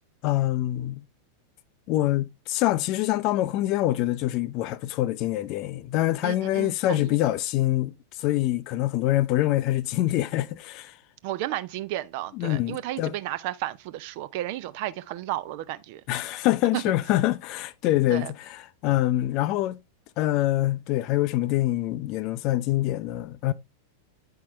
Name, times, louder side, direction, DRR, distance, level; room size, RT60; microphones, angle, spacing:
voice 1, 0.2-1.0 1.9-7.9 8.2-10.9 12.3-13.1 16.1-19.8 20.2-23.5, left 15 dB, 40° left, 0.5 m, -25 dB
voice 2, 6.2-7.1 11.2-16.0 16.7-16.8 18.1-18.3, right 14 dB, 45° right, 0.5 m, -33 dB
8.4 x 5.7 x 3.1 m
figure-of-eight pair, 90°, 0 cm